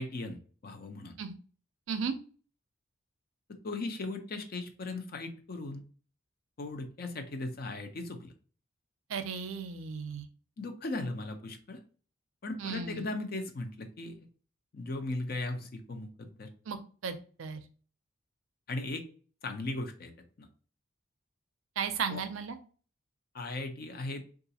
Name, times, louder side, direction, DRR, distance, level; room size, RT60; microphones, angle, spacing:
voice 1, 0.0-1.1 3.6-5.8 6.6-8.3 10.6-11.8 12.4-14.3 14.7-16.5 18.7-19.0 19.4-20.1 20.4-20.5 22.1-22.2 23.3-24.2, left 2 dB, 45° left, 6 dB, 0.5 m, -37 dB
voice 2, 9.1-10.3 12.6-13.0 16.7-16.8 17.0-17.6 21.8-22.6, right 6 dB, 75° right, 9 dB, 0.4 m, -35 dB
3.8 x 2.4 x 2.7 m, 0.40 s
head